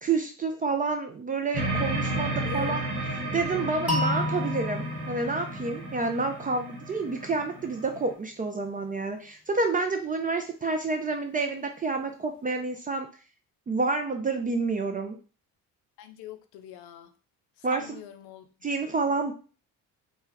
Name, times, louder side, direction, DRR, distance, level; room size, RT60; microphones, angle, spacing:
voice 1, 0.0-2.9 3.3-13.1 13.7-15.2 17.6-18.0 18.6-19.3, right 3 dB, 20° right, 4 dB, 0.3 m, -29 dB
sound 1, 1.5-8.1, right 2 dB, 85° right, 0.7 m, -33 dB
voice 2, 2.4-2.8 16.0-17.1 17.7-18.5, left 9 dB, 60° left, 7 dB, 0.5 m, -43 dB
sound 2, 3.9-6.8, left 1 dB, 5° right, 1.0 m, -32 dB
2.1 x 2.0 x 3.4 m, 0.36 s
hypercardioid pair, 50°, 44 cm